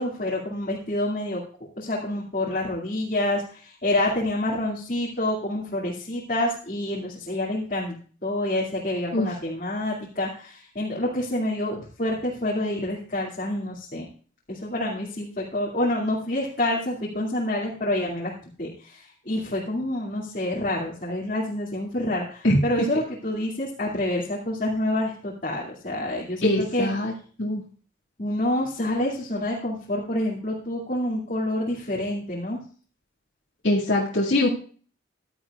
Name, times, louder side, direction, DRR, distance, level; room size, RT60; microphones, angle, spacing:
voice 1, 0.0-1.4 1.8-8.0 8.2-14.1 14.5-18.3 18.6-26.9 28.2-32.6, left 1 dB, 40° left, -5 dB, 2.4 m, -27 dB
voice 2, 26.4-27.1 27.4-27.6 33.6-34.5, left 1 dB, 65° left, -4 dB, 2.2 m, -22 dB
15.5 x 11.0 x 2.4 m, 0.42 s
head